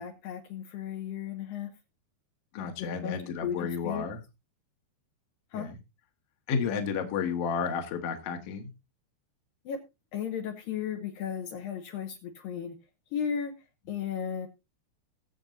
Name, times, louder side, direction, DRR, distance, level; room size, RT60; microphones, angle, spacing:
voice 1, 0.0-1.7 2.8-4.1 5.5-5.7 9.7-9.8 10.1-12.8 13.1-13.5 13.9-14.5, left 8 dB, 70° left, 4 dB, 2.4 m, -35 dB
voice 2, 2.5-4.2 5.5-5.8 6.5-8.7, left 6 dB, 55° left, 5 dB, 1.8 m, -32 dB
21.5 x 7.2 x 2.6 m, 0.24 s
omnidirectional pair, 4.8 m